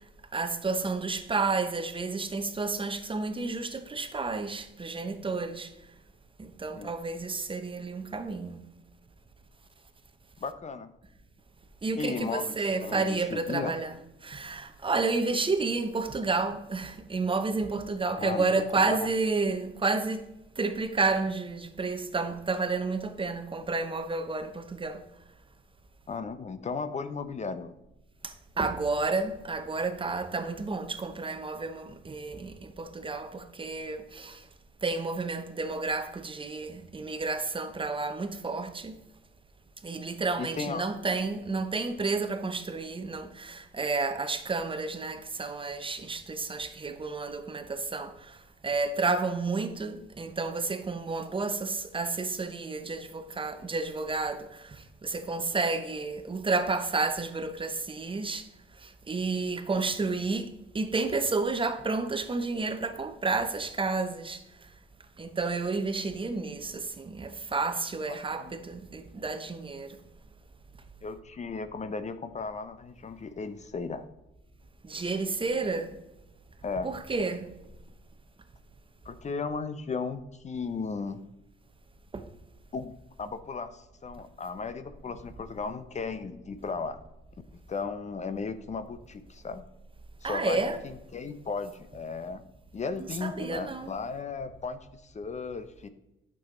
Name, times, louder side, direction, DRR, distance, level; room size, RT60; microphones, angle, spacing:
voice 1, 0.3-5.7 6.4-8.6 11.8-14.0 14.2-20.2 20.6-25.0 28.6-34.4 34.8-38.9 39.8-48.1 48.6-54.5 55.0-58.4 59.1-60.5 60.7-64.4 65.2-69.9 74.8-75.9 76.8-77.5 82.1-82.2 90.2-90.8 93.0-93.9, right 3 dB, 25° right, 0.8 m, -31 dB
voice 2, 10.4-10.9 11.9-12.6 12.8-13.7 18.2-18.5 18.8-19.1 26.1-27.7 40.4-40.9 59.7-59.8 68.1-68.5 71.0-74.1 76.6-76.9 79.0-81.2 82.7-82.9 83.2-87.0 87.7-89.6 90.2-92.4 92.7-95.9, left 4 dB, 35° left, 0.7 m, -35 dB
8.6 x 6.3 x 3.8 m
cardioid pair, 90°, 20 cm